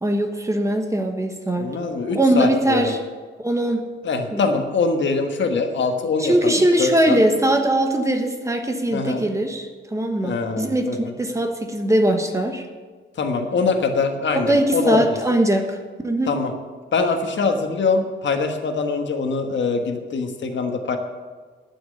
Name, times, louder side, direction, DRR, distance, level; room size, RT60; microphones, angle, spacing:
voice 1, 0.0-1.7 2.1-3.0 3.4-3.9 4.3-4.4 6.2-12.6 14.3-16.3, right 1 dB, 15° right, 5 dB, 1.2 m, -21 dB
voice 2, 1.6-2.9 4.0-7.2 8.9-9.2 10.2-11.1 13.2-15.0 16.3-16.5 16.9-21.0, left 4 dB, 70° left, 5 dB, 1.4 m, -23 dB
11.5 x 6.3 x 8.7 m, 1.5 s
wide cardioid pair, 150°, 19 cm